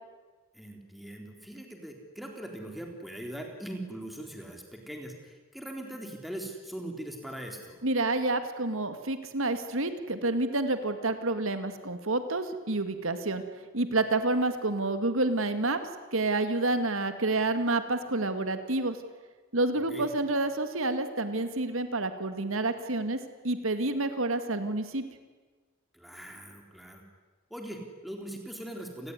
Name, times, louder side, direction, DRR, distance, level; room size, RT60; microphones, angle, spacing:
voice 1, 0.5-7.8 19.8-20.1 25.9-27.0 27.5-29.1, right 1 dB, ahead, 2 dB, 3.7 m, -41 dB
voice 2, 7.8-13.4 13.7-15.8 16.1-19.0 19.5-25.0, right 2 dB, 75° right, 9 dB, 2.1 m, -29 dB
29.0 x 20.0 x 9.8 m, 1.3 s
head